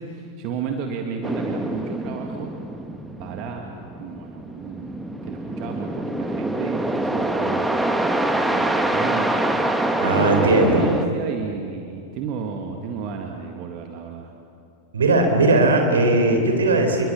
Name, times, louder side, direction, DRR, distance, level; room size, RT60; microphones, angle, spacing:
voice 1, 0.0-2.5 3.2-3.7 4.0-7.9 8.3-9.9 10.1-14.3, right 6 dB, 40° right, 3 dB, 1.9 m, -32 dB
sound 1, 1.2-11.1, right 1 dB, 5° right, 1.5 m, -25 dB
voice 2, 10.0-10.9 14.9-17.1, right 2 dB, 70° right, 4 dB, 4.3 m, -18 dB
28.0 x 22.0 x 7.2 m, 2.6 s
figure-of-eight pair, 90°, 0 cm